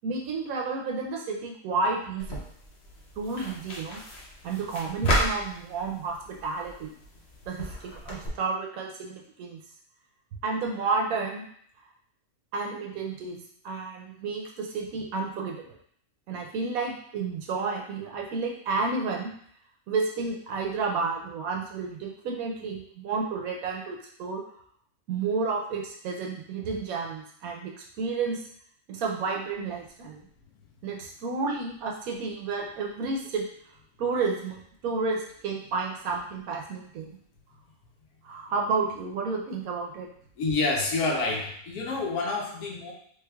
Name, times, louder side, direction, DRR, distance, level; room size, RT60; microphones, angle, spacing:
voice 1, 0.0-2.4 3.2-4.0 4.4-6.9 7.5-9.6 10.4-11.5 12.5-13.4 13.6-15.8 16.3-19.3 19.9-24.4 25.1-28.4 28.9-30.2 30.8-33.5 34.0-37.2 38.2-40.1, right 4 dB, 75° right, 1 dB, 1.0 m, -31 dB
sound 1, 2.2-8.3, equal, 50° left, 0.9 m, -34 dB
voice 2, 40.4-42.9, left 3 dB, 75° left, -1 dB, 1.2 m, -28 dB
3.4 x 3.2 x 2.3 m, 0.64 s
omnidirectional pair, 1.6 m